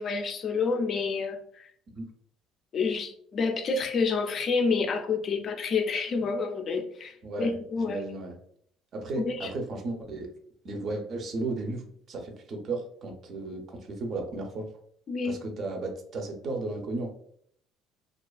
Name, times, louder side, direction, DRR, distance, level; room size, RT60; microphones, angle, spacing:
voice 1, 0.0-1.7 2.7-8.0 9.2-9.5 15.1-15.4, left 4 dB, 40° left, 6 dB, 0.4 m, -28 dB
voice 2, 7.2-8.3 8.9-10.3 10.6-14.7 15.2-17.1, right 2 dB, 45° right, 3 dB, 0.5 m, -34 dB
2.4 x 2.3 x 2.3 m, 0.64 s
cardioid pair, 130°, 0 cm